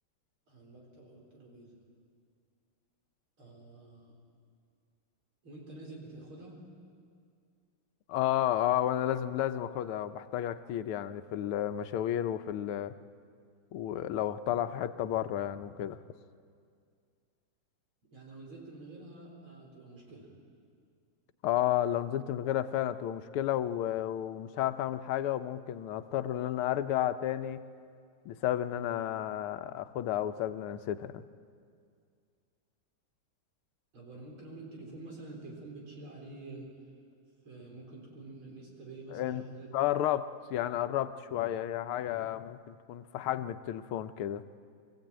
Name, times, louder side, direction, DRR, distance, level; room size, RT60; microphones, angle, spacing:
voice 1, 0.5-1.8 3.4-4.2 5.4-6.6 18.1-20.3 33.9-36.7 37.4-39.8, right 2 dB, 75° right, -1 dB, 4.9 m, -48 dB
voice 2, 8.1-12.9 13.7-16.0 21.4-27.6 28.3-31.2 39.1-39.4 39.7-44.4, left 12 dB, 90° left, 11 dB, 1.6 m, -32 dB
23.5 x 15.5 x 8.8 m, 2.2 s
omnidirectional pair, 2.3 m